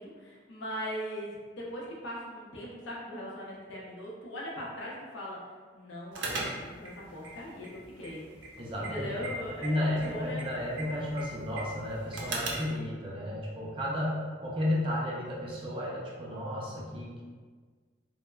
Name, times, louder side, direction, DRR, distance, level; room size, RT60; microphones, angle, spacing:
voice 1, 0.0-5.4 5.7-8.2 8.8-10.7, equal, 80° left, -4 dB, 0.6 m, -40 dB
sound 1, 6.1-12.8, right 2 dB, 80° right, 0.5 m, -40 dB
voice 2, 8.6-9.1 9.6-17.2, left 1 dB, 30° right, -5 dB, 0.4 m, -33 dB
3.1 x 2.0 x 2.2 m, 1.5 s
head